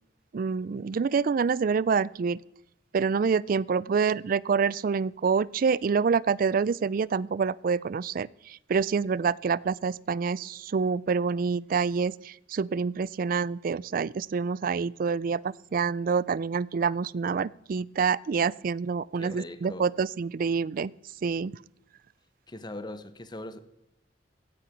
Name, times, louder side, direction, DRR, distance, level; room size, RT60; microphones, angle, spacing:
voice 1, 0.3-2.4 2.9-20.9 21.2-21.5, right 5 dB, 50° right, 0.4 m, -27 dB
voice 2, 19.1-19.9 22.5-23.6, left 1 dB, 25° left, 0.9 m, -40 dB
16.5 x 8.8 x 6.0 m
head